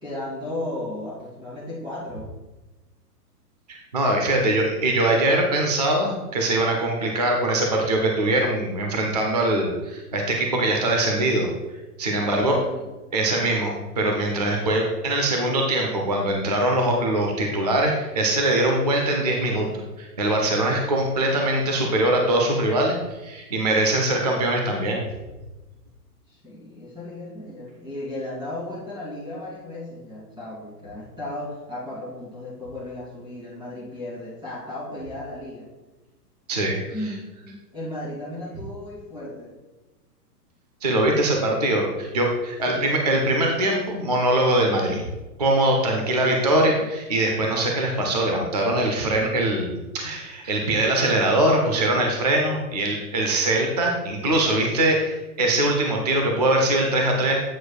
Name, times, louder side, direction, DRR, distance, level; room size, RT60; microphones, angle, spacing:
voice 1, 0.0-2.3 4.3-4.7 12.2-12.8 26.3-35.7 36.9-39.5 42.6-42.9 46.0-46.9 57.0-57.4, left 1 dB, 10° right, -6 dB, 2.3 m, -35 dB
voice 2, 3.7-11.5 12.0-12.5 13.1-13.7 14.0-19.7 20.0-25.0 36.5-36.8 40.8-45.1 45.4-57.4, right 1 dB, 30° right, 1 dB, 0.4 m, -22 dB
8.2 x 7.0 x 2.2 m, 1.1 s
hypercardioid pair, 165°, 47 cm